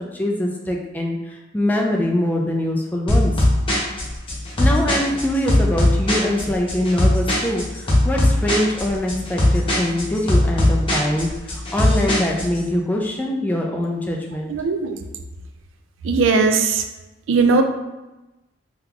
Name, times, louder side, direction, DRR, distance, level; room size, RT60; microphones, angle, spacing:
voice 1, 0.1-3.3 4.5-14.5, left 1 dB, 10° left, 0 dB, 0.3 m, -23 dB
sound 1, 3.1-12.6, left 1 dB, 25° left, 0.7 m, -19 dB
voice 2, 14.5-15.0 16.0-16.9 17.3-17.6, right 4 dB, 80° right, 6 dB, 0.4 m, -18 dB
3.7 x 2.8 x 2.3 m, 1.0 s
head